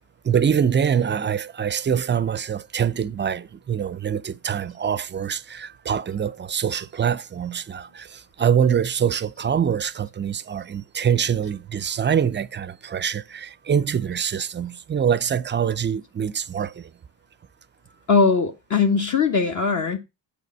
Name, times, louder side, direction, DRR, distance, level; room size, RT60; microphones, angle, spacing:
voice 1, 0.2-16.9, right 8 dB, 25° right, 0.5 m, -24 dB
voice 2, 18.1-20.0, left 5 dB, 45° left, 1.4 m, -20 dB
8.5 x 6.6 x 5.3 m
cardioid pair, 110°, 42 cm